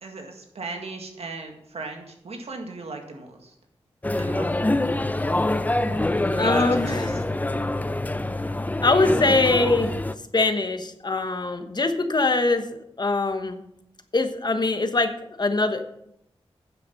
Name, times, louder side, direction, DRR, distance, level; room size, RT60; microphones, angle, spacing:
voice 1, 0.0-3.5 4.2-4.6 6.3-7.2, right 3 dB, 75° right, 3 dB, 1.9 m, -37 dB
sound 1, 4.0-10.1, left 2 dB, 15° left, 0.6 m, -25 dB
voice 2, 6.4-7.2 8.8-9.9 10.3-13.6 14.1-15.1 15.4-15.8, left 3 dB, 45° left, 8 dB, 1.2 m, -23 dB
9.9 x 7.6 x 5.7 m, 0.77 s
wide cardioid pair, 75°, 11 cm